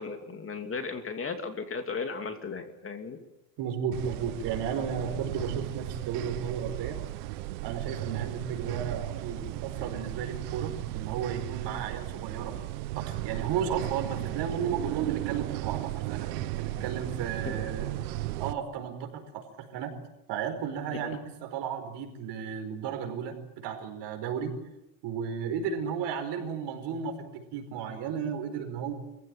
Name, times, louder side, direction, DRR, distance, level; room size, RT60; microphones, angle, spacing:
voice 1, 0.0-3.2 17.5-17.6 21.0-21.1, left 4 dB, 30° left, 7 dB, 2.7 m, -36 dB
voice 2, 3.6-7.0 7.6-12.5 12.9-16.3 16.6-17.9 18.4-19.9 20.3-24.5 25.0-28.9, right 7 dB, 60° right, 5 dB, 5.0 m, -34 dB
sound 1, 3.9-18.5, right 16 dB, 90° right, 1.2 m, -35 dB
24.5 x 16.0 x 9.3 m, 0.93 s
supercardioid pair, 110°, 45 cm